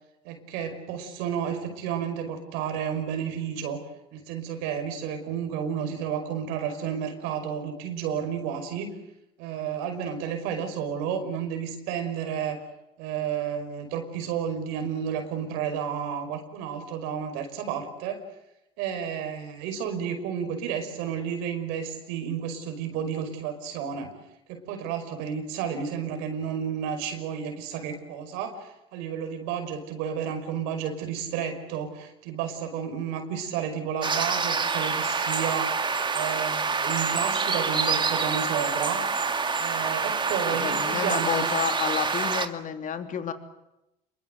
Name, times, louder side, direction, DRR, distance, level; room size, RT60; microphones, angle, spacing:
voice 1, 0.2-3.8 4.1-8.9 9.4-12.6 13.0-18.2 18.8-24.1 24.5-35.9 36.1-39.0 39.6-41.5, right 8 dB, 85° right, 7 dB, 5.4 m, -31 dB
sound 1, 34.0-42.5, right 5 dB, 25° right, 2.2 m, -26 dB
voice 2, 40.5-43.3, left 8 dB, 50° left, 7 dB, 3.3 m, -30 dB
27.5 x 23.0 x 8.0 m, 0.89 s
supercardioid pair, 85°, 17 cm